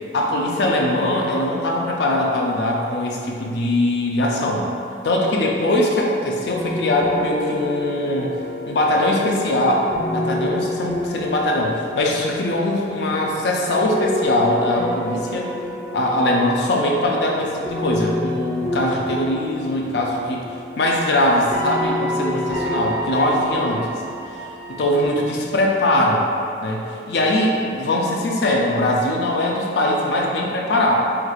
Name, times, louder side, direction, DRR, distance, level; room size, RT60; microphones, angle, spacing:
voice 1, 0.1-4.7 5.0-8.3 8.7-15.5 15.9-20.4 20.8-24.0 24.8-26.3 26.6-30.9, left 1 dB, 70° left, -1 dB, 0.4 m, -21 dB
sound 1, 6.4-25.1, left 1 dB, 85° right, 1.1 m, -29 dB
4.4 x 2.4 x 2.3 m, 2.5 s
head